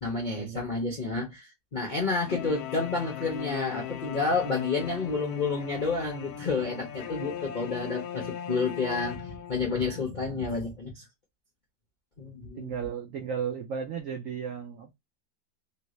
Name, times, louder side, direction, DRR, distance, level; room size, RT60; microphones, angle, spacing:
voice 1, 0.0-11.0 12.2-12.7, left 4 dB, 55° left, 0.5 m, -30 dB
sound 1, 2.3-10.0, left 10 dB, 70° left, 1.1 m, -39 dB
voice 2, 12.6-14.9, right 7 dB, 75° right, 0.7 m, -35 dB
3.2 x 2.7 x 3.0 m
omnidirectional pair, 2.0 m